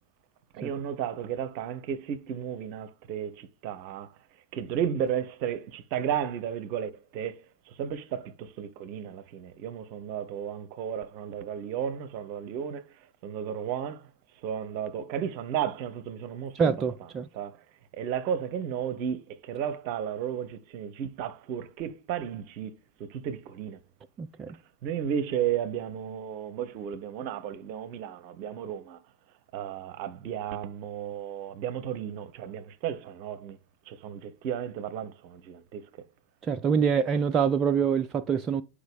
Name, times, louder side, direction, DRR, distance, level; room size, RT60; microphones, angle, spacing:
voice 1, 0.5-4.1 4.5-7.4 7.8-12.8 13.2-14.0 14.4-16.8 17.3-17.6 17.9-22.7 23.1-23.8 24.8-29.0 29.5-33.6 33.9-35.8, right 9 dB, 45° right, 0.8 m, -33 dB
voice 2, 16.5-17.3 24.2-24.5 36.4-38.6, right 6 dB, 25° right, 0.4 m, -25 dB
10.0 x 4.8 x 3.5 m
figure-of-eight pair, 90°, 0 cm